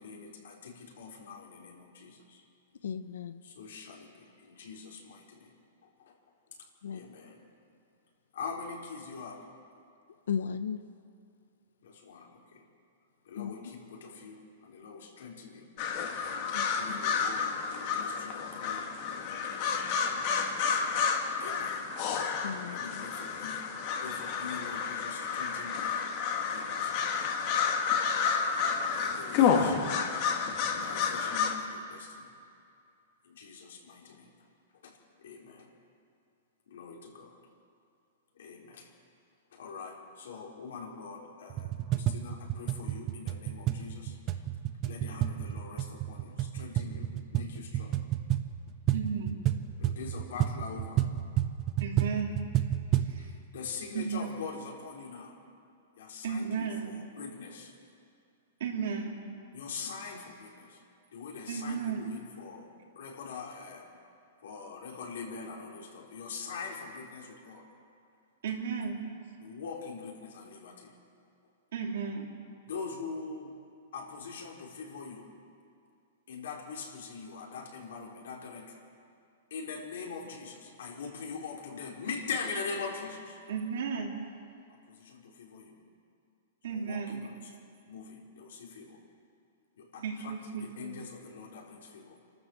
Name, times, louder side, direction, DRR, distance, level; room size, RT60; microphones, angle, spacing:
voice 1, 0.0-2.4 3.4-5.6 5.8-6.1 6.9-7.4 8.3-9.5 11.8-12.7 13.2-15.7 16.6-17.5 17.7-20.7 21.4-21.9 22.7-26.0 26.5-27.3 28.5-29.8 30.6-32.3 33.2-34.3 34.7-35.7 36.7-37.4 38.3-38.9 39.5-44.4 44.8-48.0 49.8-51.0 53.2-55.4 56.0-57.7 59.5-60.8 61.1-62.7 63.0-63.9 64.4-67.6 69.4-70.9 72.7-73.6 73.9-75.3 76.3-78.8 79.5-83.4 84.7-85.8 86.7-87.5 87.9-89.0 89.8-92.2, left 5 dB, 65° left, -1 dB, 4.1 m, -43 dB
voice 2, 2.8-3.4 6.8-7.1 10.3-10.8 13.4-13.5 16.5-17.0 22.3-23.0, left 7 dB, 90° left, 11 dB, 1.0 m, -36 dB
sound 1, 15.8-31.6, left 6 dB, 30° left, 1.7 m, -30 dB
sound 2, 41.5-53.2, right 12 dB, 20° right, 0.7 m, -31 dB
voice 3, 48.9-49.5 51.8-52.4 53.0-53.3 53.9-54.3 56.2-57.0 58.6-59.3 61.5-62.0 68.4-69.3 71.7-72.4 83.5-84.2 86.6-87.3 90.0-90.9, right 6 dB, 60° right, -1 dB, 3.0 m, -34 dB
28.5 x 13.0 x 7.9 m, 2.5 s
hypercardioid pair, 180°, 0 cm